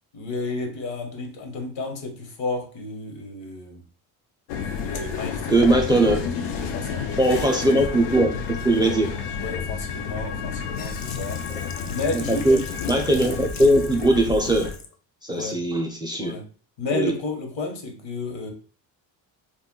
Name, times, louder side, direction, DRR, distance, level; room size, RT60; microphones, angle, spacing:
voice 1, 0.1-3.8 4.8-5.8 6.5-7.2 9.4-11.4 11.8-12.6 15.3-15.6 16.2-16.4 16.8-18.5, left 2 dB, 70° left, 3 dB, 1.1 m, -31 dB
sound 1, 4.5-14.7, left 6 dB, 85° left, 0.6 m, -31 dB
voice 2, 5.5-6.2 7.2-9.1 12.1-12.6 12.9-14.7 15.2-16.3 16.9-17.1, right 1 dB, 10° right, 3 dB, 0.4 m, -20 dB
Sink (filling or washing), 10.7-14.9 15.4-15.5, left 5 dB, 40° left, 0.6 m, -41 dB
2.4 x 2.2 x 3.6 m, 0.39 s
supercardioid pair, 80°, 46 cm